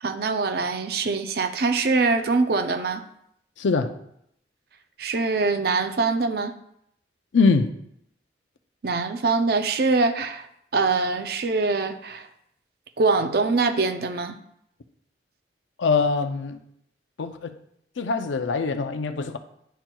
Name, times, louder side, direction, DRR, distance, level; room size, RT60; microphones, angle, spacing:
voice 1, 0.0-3.0 5.0-6.5 8.8-10.5 10.7-12.3 13.0-14.4, right 3 dB, 55° right, 0.5 m, -23 dB
voice 2, 3.6-4.0 7.3-7.7 15.8-16.6 17.2-17.5 18.0-19.4, left 4 dB, 85° left, 0.5 m, -23 dB
10.0 x 4.4 x 2.3 m
head